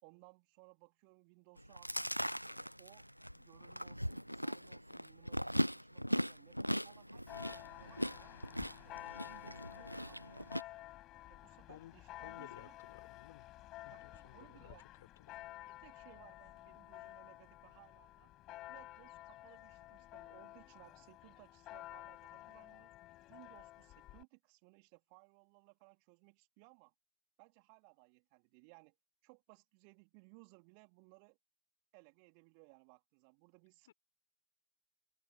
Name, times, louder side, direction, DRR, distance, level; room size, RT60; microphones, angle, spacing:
voice 1, 0.0-1.9 2.5-3.1 3.3-8.4 8.8-10.7 11.3-12.8 13.9-14.8 15.7-18.3 18.7-22.9 23.3-26.9 27.4-29.0 29.2-31.4 31.9-33.9, right 40 dB or more, 45° right, 3.7 m, -63 dB
Chewing mastication, 1.6-10.6, equal, 90° right, 0.4 m, -39 dB
Church bell, 7.3-24.2, left 16 dB, 35° left, 6.9 m, -52 dB
voice 2, 12.2-13.5 13.8-14.7 15.2-15.4 33.9-34.0, left 12 dB, 60° left, 5.6 m, -56 dB
open air
figure-of-eight pair, 90°, 0 cm